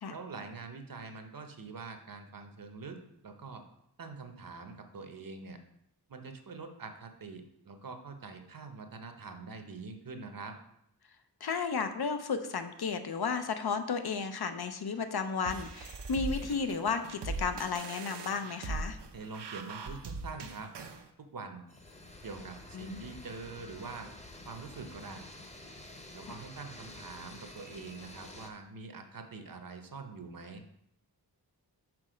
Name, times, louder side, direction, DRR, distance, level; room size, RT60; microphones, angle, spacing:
voice 1, 0.1-3.0 3.2-3.6 4.0-5.6 6.1-10.5 19.1-20.7 21.2-21.6 22.2-24.1 24.5-25.2 26.1-30.6, right 4 dB, 55° right, 6 dB, 0.9 m, -44 dB
voice 2, 11.4-19.0 22.7-23.1 26.3-26.4, left 5 dB, 70° left, 8 dB, 0.7 m, -33 dB
sound 1, 15.5-21.0, right 3 dB, 85° right, 0.8 m, -40 dB
sound 2, 21.7-28.5, left 2 dB, 15° left, 0.8 m, -49 dB
6.1 x 4.3 x 5.0 m, 0.76 s
wide cardioid pair, 90°, 40 cm